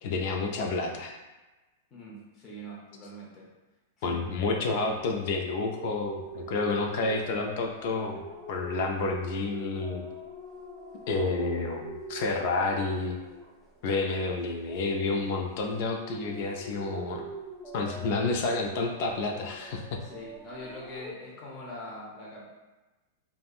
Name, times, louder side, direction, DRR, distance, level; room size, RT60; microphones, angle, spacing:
voice 1, 0.0-1.1 4.0-8.2 8.5-10.1 11.1-13.2 13.8-17.2 17.7-20.0, left 3 dB, 55° left, 2 dB, 0.4 m, -30 dB
voice 2, 1.9-3.5 4.1-4.2 20.0-22.4, left 1 dB, 30° left, -4 dB, 0.8 m, -43 dB
sound 1, 4.4-14.2 14.5-21.1, right 2 dB, 10° right, 0.4 m, -43 dB
3.4 x 2.1 x 2.4 m, 1.1 s
hypercardioid pair, 120°, 0 cm